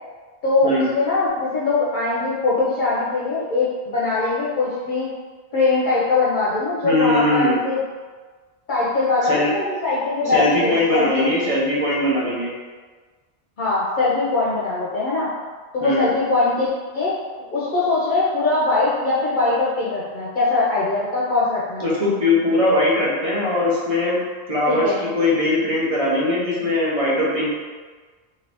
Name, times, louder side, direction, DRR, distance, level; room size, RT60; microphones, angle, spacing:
voice 1, 0.4-5.1 5.5-7.8 8.7-11.3 13.6-15.3 15.7-16.7 16.9-17.1 17.5-21.9 24.7-25.0, left 3 dB, 55° left, -8 dB, 0.7 m, -21 dB
voice 2, 6.8-7.5 9.2-9.5 10.2-12.5 15.8-16.1 21.8-24.2 24.5-27.5, left 1 dB, 35° right, -6 dB, 0.8 m, -20 dB
2.7 x 2.6 x 3.3 m, 1.4 s
omnidirectional pair, 1.1 m